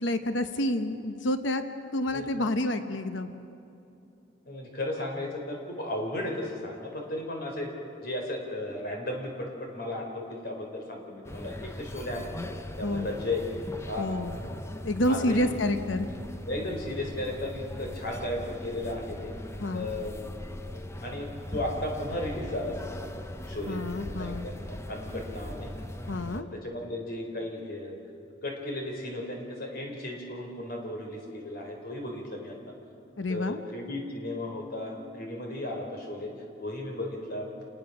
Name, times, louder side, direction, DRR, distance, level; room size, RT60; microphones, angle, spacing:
voice 1, 0.0-1.6 1.9-3.3 12.8-13.1 14.0-14.4 14.8-16.1 19.6-19.9 23.7-24.5 26.1-26.5 33.2-33.6, left 1 dB, 70° left, 9 dB, 1.0 m, -29 dB
voice 2, 4.5-7.7 8.0-12.3 12.8-13.4 13.9-14.1 15.1-15.7 16.5-19.3 19.7-20.2 21.0-23.8 24.1-25.7 26.2-28.0 28.4-32.5 33.3-36.3 36.6-37.5, left 1 dB, 50° left, 1 dB, 4.2 m, -35 dB
sound 1, 11.2-26.4, left 1 dB, 15° left, 0.8 m, -40 dB
28.0 x 20.0 x 6.1 m, 2.8 s
head